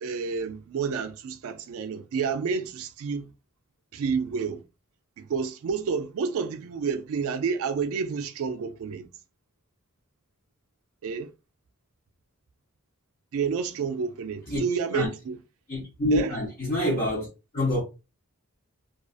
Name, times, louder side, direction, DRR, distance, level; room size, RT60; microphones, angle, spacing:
voice 1, 0.0-3.3 3.9-4.6 5.2-9.1 11.0-11.3 13.3-15.4 16.1-16.4, right 5 dB, 70° right, 0.3 m, -29 dB
voice 2, 15.7-17.3 17.5-17.8, left 1 dB, 40° left, 0.7 m, -26 dB
2.4 x 2.3 x 2.4 m
head